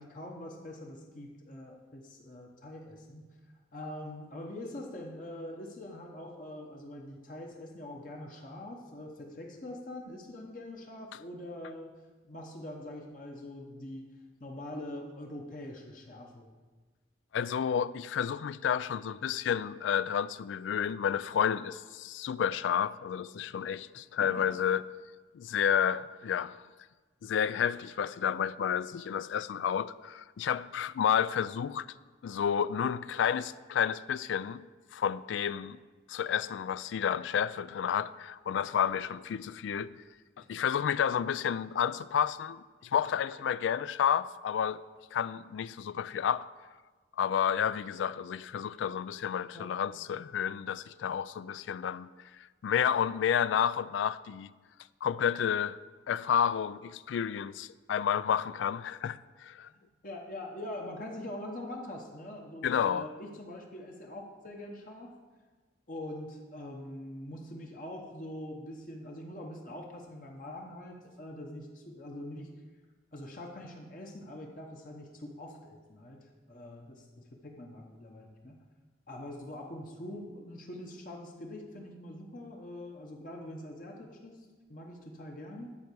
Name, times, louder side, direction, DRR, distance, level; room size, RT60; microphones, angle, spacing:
voice 1, 0.0-3.3 3.7-14.1 14.4-16.5 24.2-24.5 40.4-40.5 49.5-49.7 59.7-65.2 65.9-72.5 73.1-78.6 79.1-85.7, left 1 dB, 45° left, 0.9 m, -44 dB
voice 2, 17.3-24.8 25.3-26.6 27.2-31.9 32.2-34.6 34.9-35.8 36.1-40.0 40.5-44.8 45.1-46.5 47.2-52.1 52.6-54.5 55.0-55.8 56.1-59.7 62.6-63.1, left 8 dB, 90° left, 0.3 m, -30 dB
11.0 x 4.6 x 6.8 m
head